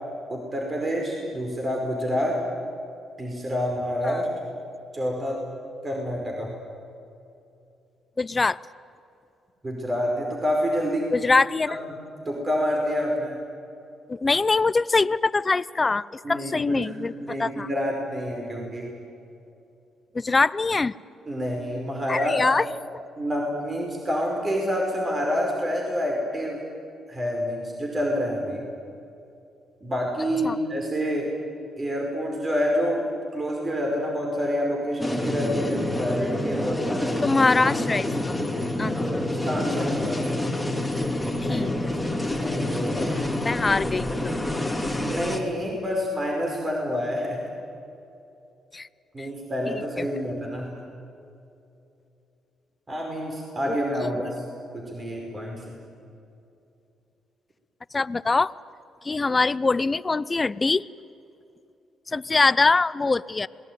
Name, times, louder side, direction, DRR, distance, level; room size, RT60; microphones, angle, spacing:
voice 1, 0.3-2.4 3.2-4.3 4.9-5.4 5.8-6.5 9.6-11.2 11.7-11.8 12.3-13.4 16.2-16.9 17.2-18.9 21.3-22.4 23.2-26.7 27.1-28.6 29.8-31.4 31.8-37.2 38.9-40.2 41.5-41.7 42.4-43.4 45.0-47.5 49.1-50.7 52.9-54.4 54.7-55.8, equal, 30° right, 0 dB, 5.2 m, -28 dB
voice 2, 8.2-8.6 11.1-11.8 14.1-17.7 20.1-20.9 22.1-22.7 30.4-30.6 37.2-38.4 38.8-39.2 41.5-41.7 42.0-42.1 43.4-44.3 48.7-48.9 49.2-49.3 49.7-50.1 53.7-53.8 54.0-54.3 57.9-58.5 59.0-60.9 62.1-63.5, left 3 dB, 25° left, 18 dB, 0.6 m, -23 dB
sound 1, 35.0-45.4, left 1 dB, 5° left, 3.4 m, -27 dB
27.0 x 20.5 x 9.5 m, 2.7 s
cardioid pair, 90°, 0 cm